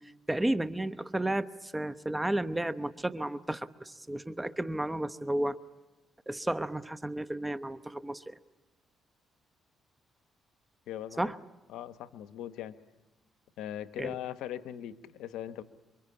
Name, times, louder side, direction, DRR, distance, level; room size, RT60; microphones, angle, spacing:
voice 1, 0.3-5.6 6.3-8.3 11.2-11.4 14.0-14.2, right 1 dB, 10° right, 12 dB, 0.9 m, -32 dB
voice 2, 10.9-11.3 11.7-12.7 13.6-15.6, left 11 dB, 90° left, 11 dB, 0.9 m, -40 dB
27.5 x 24.0 x 8.5 m, 1.1 s
cardioid pair, 90°, 0 cm